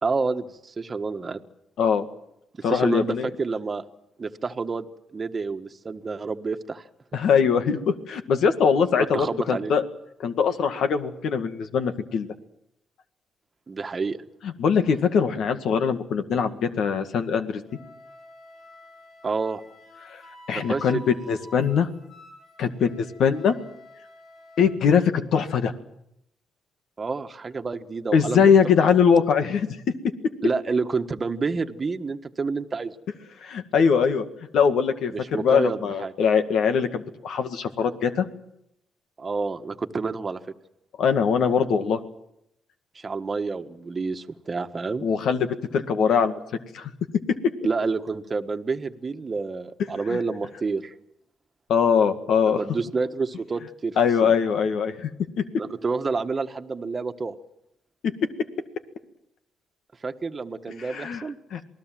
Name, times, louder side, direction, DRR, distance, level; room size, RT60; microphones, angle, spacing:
voice 1, 0.0-1.4 2.7-3.8 4.2-6.8 9.0-9.7 13.7-14.2 19.2-19.6 20.5-20.8 27.0-28.5 30.4-33.0 35.1-36.1 39.2-40.4 42.9-45.1 47.6-50.9 52.5-54.0 54.2-54.3 55.6-57.3 60.0-61.4, right 4 dB, 35° right, 6 dB, 1.5 m, -29 dB
voice 2, 2.6-3.3 7.1-9.8 10.2-12.3 14.4-17.6 20.1-20.2 20.5-21.9 22.6-23.5 24.6-25.7 28.1-29.7 33.4-34.3 34.5-38.3 41.0-42.0 45.0-46.4 46.7-46.9 51.7-52.6 54.0-55.1 55.4-55.5 60.8-61.2 61.5-61.6, left 6 dB, 70° left, 8 dB, 1.9 m, -22 dB
Wind instrument woodwind instrument, 17.7-24.8, left 1 dB, 55° left, 7.5 m, -48 dB
27.5 x 19.0 x 7.6 m, 0.79 s
cardioid pair, 90°, 0 cm